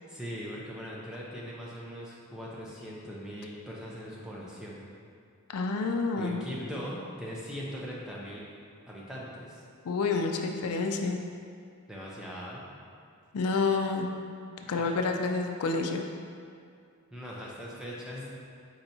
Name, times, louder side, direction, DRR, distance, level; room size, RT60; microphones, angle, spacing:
voice 1, 0.1-4.8 6.2-8.5 8.9-9.6 11.9-12.6 14.7-15.0 17.1-18.3, equal, 5° right, -6 dB, 0.6 m, -40 dB
voice 2, 5.5-6.4 9.9-11.2 13.3-14.1 14.7-16.0, left 4 dB, 90° left, 4 dB, 0.4 m, -28 dB
4.5 x 4.2 x 2.7 m, 2.4 s
head